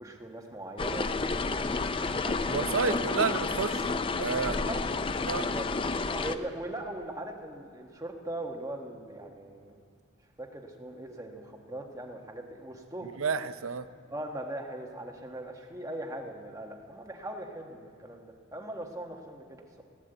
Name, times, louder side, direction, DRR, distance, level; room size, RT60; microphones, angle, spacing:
voice 1, 0.0-3.0 4.3-4.8 5.3-5.7 6.1-9.7 10.4-13.2 14.1-19.8, right 1 dB, 15° right, 2 dB, 1.3 m, -40 dB
sound 1, 0.8-6.4, left 3 dB, 25° left, 0.4 m, -30 dB
voice 2, 2.5-4.6 5.3-5.5 13.2-13.9, right 5 dB, 85° right, 12 dB, 0.6 m, -30 dB
16.5 x 9.9 x 7.9 m, 2.3 s
head